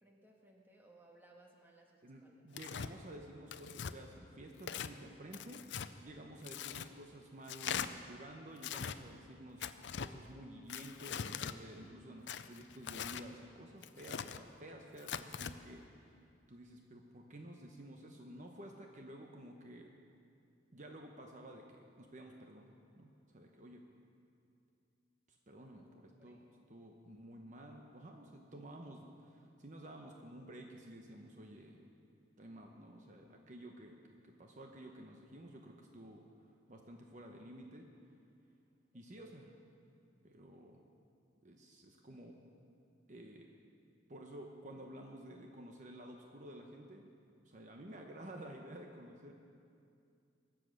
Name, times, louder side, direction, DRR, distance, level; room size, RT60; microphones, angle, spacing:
voice 1, 0.0-2.4 25.7-25.9 26.2-26.4 26.8-27.0 39.1-39.3, right 2 dB, 10° right, 0 dB, 1.5 m, -64 dB
voice 2, 2.0-16.2 16.5-19.9 20.7-23.8 25.3-26.4 26.7-31.8 32.4-34.0 34.2-36.2 36.7-37.8 38.9-39.5 40.2-40.8 41.4-42.3 43.1-43.5 44.1-47.1 47.4-49.3, right 1 dB, 40° right, 2 dB, 1.0 m, -52 dB
Tearing, 2.5-2.9 3.5-3.9 4.6-4.9 5.3-5.9 6.4-6.9 7.5-7.9 8.6-9.0 9.6-10.1 10.7-11.6 12.3-13.3 13.8-14.4 15.0-15.5, left 8 dB, 65° left, 0.5 m, -41 dB
22.5 x 7.6 x 6.5 m, 2.5 s
head